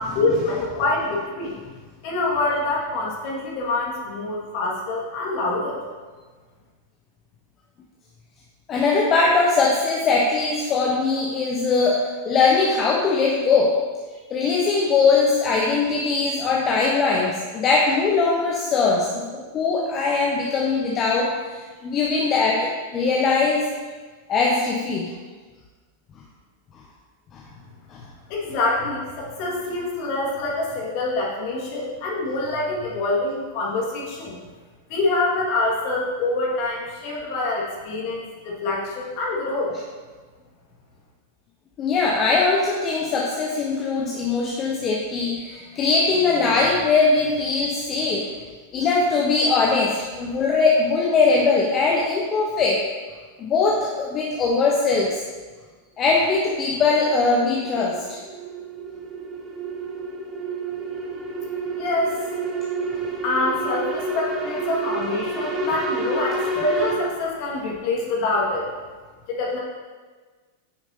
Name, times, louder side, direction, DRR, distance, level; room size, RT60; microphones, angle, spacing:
voice 1, 0.0-1.6 2.0-5.8 28.3-34.4 34.9-39.7 61.8-62.2 63.2-68.7 69.3-69.6, left 2 dB, 50° left, -3 dB, 2.1 m, -25 dB
voice 2, 8.7-13.7 14.3-23.7 24.3-25.1 27.3-27.4 27.9-28.0 41.8-48.3 48.7-52.8 53.4-55.2 56.0-58.2, left 4 dB, 30° left, -2 dB, 0.9 m, -21 dB
sound 1, 56.8-66.9, right 2 dB, 20° right, 1.6 m, -30 dB
9.2 x 6.0 x 2.9 m, 1.4 s
figure-of-eight pair, 90°, 0 cm